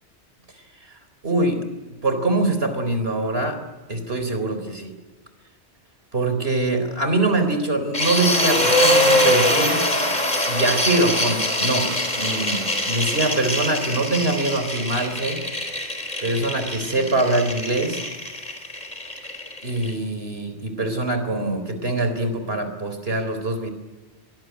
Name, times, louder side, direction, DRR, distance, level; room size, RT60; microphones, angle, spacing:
voice 1, 1.2-1.6 2.0-3.6 3.9-4.9 6.1-9.8 10.5-15.4 16.2-18.0 19.6-23.7, right 2 dB, 60° right, 8 dB, 4.1 m, -23 dB
sound 1, 7.9-19.9, left 1 dB, 40° left, 4.7 m, -23 dB
24.0 x 19.5 x 9.5 m, 1.3 s
omnidirectional pair, 1.2 m